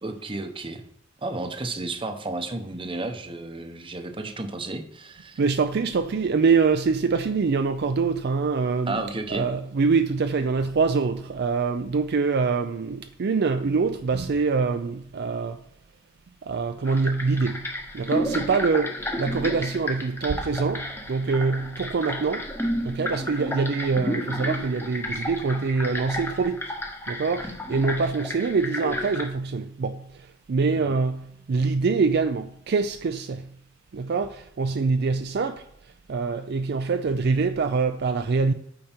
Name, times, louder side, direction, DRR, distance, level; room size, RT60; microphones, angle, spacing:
voice 1, 0.0-0.8 1.2-5.4 8.9-9.5 30.9-31.0, right 2 dB, 25° right, 0.8 m, -32 dB
voice 2, 5.4-9.0 9.3-15.6 16.4-22.5 22.8-26.6 27.1-33.6 33.9-35.6 36.1-38.5, right 4 dB, 55° right, 0.4 m, -25 dB
sound 1, 16.8-29.3, equal, 10° left, 0.9 m, -32 dB
8.8 x 5.2 x 4.4 m
head